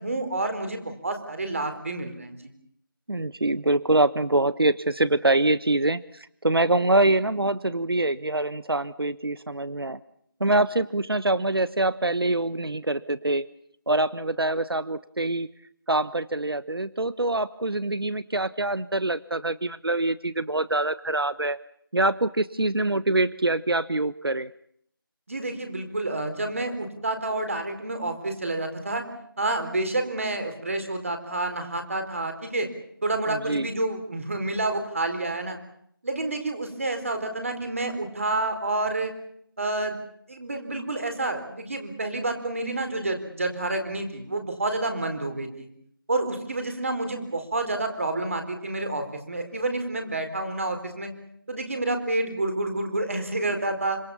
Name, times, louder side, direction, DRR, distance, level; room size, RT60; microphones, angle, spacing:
voice 1, 0.0-2.5 25.3-29.1 29.4-32.7 33.0-35.6 36.0-39.1 39.6-40.0 40.3-45.7 46.1-51.1 51.5-54.0, right 2 dB, 35° right, 7 dB, 4.3 m, -29 dB
voice 2, 3.1-10.0 10.4-13.4 13.9-15.5 15.9-21.6 21.9-24.5 33.3-33.7, right 2 dB, 85° right, 16 dB, 1.2 m, -24 dB
26.5 x 26.0 x 7.2 m, 0.69 s
figure-of-eight pair, 175°, 12 cm